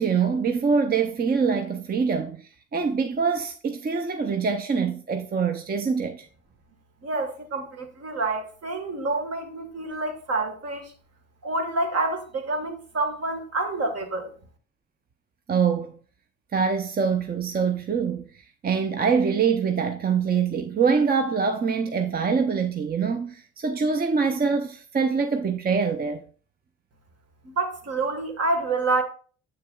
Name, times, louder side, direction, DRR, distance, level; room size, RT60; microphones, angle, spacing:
voice 1, 0.0-6.3 15.5-15.9 16.5-18.2 18.6-26.2, right 5 dB, 30° right, 0.6 m, -24 dB
voice 2, 7.0-10.9 11.4-14.3 27.4-29.0, right 3 dB, 55° right, 1.6 m, -28 dB
7.7 x 6.6 x 2.3 m
cardioid pair, 90°, 30 cm